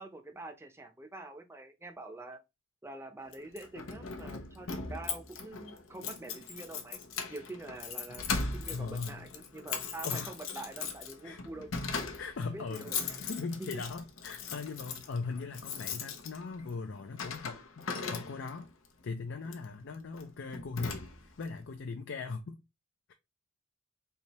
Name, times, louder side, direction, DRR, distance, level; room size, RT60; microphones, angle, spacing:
voice 1, 0.0-2.4 2.8-7.0 7.3-8.3 8.5-11.7 12.5-13.1 13.6-13.8, right 2 dB, 15° right, 0.7 m, -45 dB
Keys jangling, 3.3-18.7 19.4-19.7 20.2-20.3 20.5-21.4, left 5 dB, 85° left, 0.8 m, -39 dB
voice 2, 8.7-9.2 10.0-10.3 11.2-11.4 12.2-18.7 19.0-22.6, left 4 dB, 65° left, 0.5 m, -39 dB
3.4 x 2.7 x 4.1 m
head